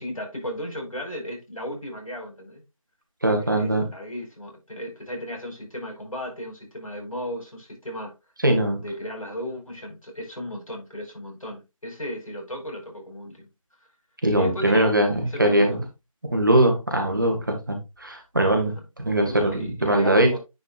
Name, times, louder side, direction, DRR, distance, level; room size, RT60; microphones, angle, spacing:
voice 1, 0.0-2.6 3.4-8.1 8.8-13.4 14.4-14.9 15.2-15.8 18.8-18.9 19.1-20.4, equal, 70° left, 4.8 m, -35 dB
voice 2, 3.2-3.8 8.4-8.8 14.2-15.8 16.2-20.4, right 1 dB, 35° right, 1.8 m, -21 dB
9.7 x 5.2 x 2.4 m
figure-of-eight pair, 170°, 18 cm